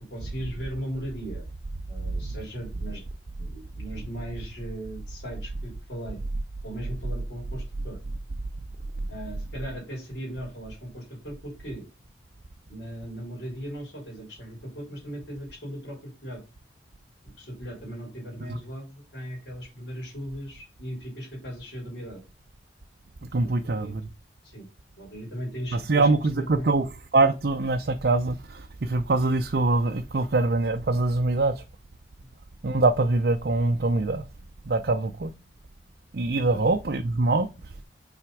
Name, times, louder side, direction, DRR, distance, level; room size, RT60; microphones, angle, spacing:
voice 1, 0.1-1.4 1.9-3.0 3.4-6.2 6.6-8.0 9.1-11.9 12.7-16.4 17.4-22.2 23.4-23.9 24.4-24.7 25.0-26.1 26.3-26.7 36.5-36.6, equal, 70° left, 3.5 m, -38 dB
voice 2, 23.3-24.0 25.7-26.8 27.1-31.5 32.6-34.2 34.7-35.3 36.1-37.5, right 3 dB, 60° right, 0.6 m, -23 dB
5.8 x 4.3 x 4.9 m
head